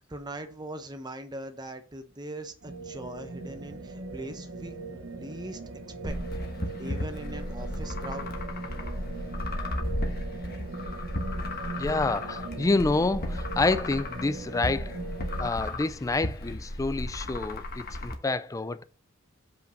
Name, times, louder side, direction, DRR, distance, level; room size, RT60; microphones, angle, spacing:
voice 1, 0.1-5.6 6.0-6.2 6.8-8.4, right 1 dB, 20° right, 0.9 m, -40 dB
sound 1, 2.6-15.5, right 3 dB, 65° right, 1.1 m, -39 dB
sound 2, 6.1-18.1, left 1 dB, 50° left, 1.2 m, -35 dB
voice 2, 11.8-15.0 15.4-18.8, left 3 dB, 15° left, 0.4 m, -28 dB
5.2 x 5.2 x 6.5 m
head